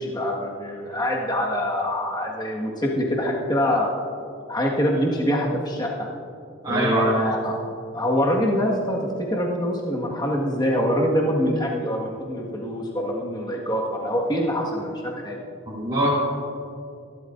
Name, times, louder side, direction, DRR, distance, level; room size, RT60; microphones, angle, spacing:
voice 1, 0.0-3.9 4.5-6.1 6.7-7.6 7.9-15.4, equal, 20° left, -2 dB, 1.6 m, -24 dB
voice 2, 6.6-7.1 15.7-16.1, right 1 dB, 20° right, -7 dB, 3.1 m, -23 dB
23.5 x 12.5 x 2.6 m, 2.5 s
head